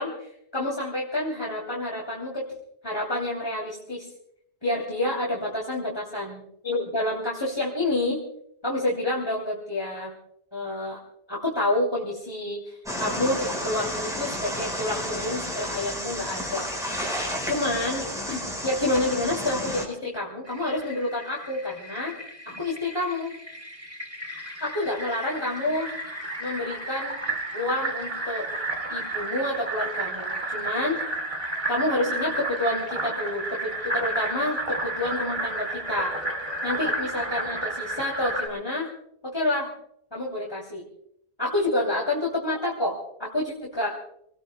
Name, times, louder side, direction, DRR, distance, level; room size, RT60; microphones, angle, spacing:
voice 1, 0.0-2.4 2.8-4.1 4.6-8.2 8.6-10.1 10.5-11.0 11.3-17.0 17.5-22.1 22.4-23.3 24.6-25.9 26.4-27.2 27.5-28.5 28.9-31.0 31.7-36.1 36.6-38.9 39.2-39.7 40.1-40.8 41.4-44.0, left 1 dB, 25° left, -5 dB, 3.0 m, -28 dB
sound 1, 12.9-19.9, equal, 5° right, 4.6 m, -31 dB
Fill (with liquid), 20.5-38.5, right 2 dB, 30° right, 2.6 m, -32 dB
28.5 x 19.0 x 2.2 m, 0.73 s
omnidirectional pair, 1.1 m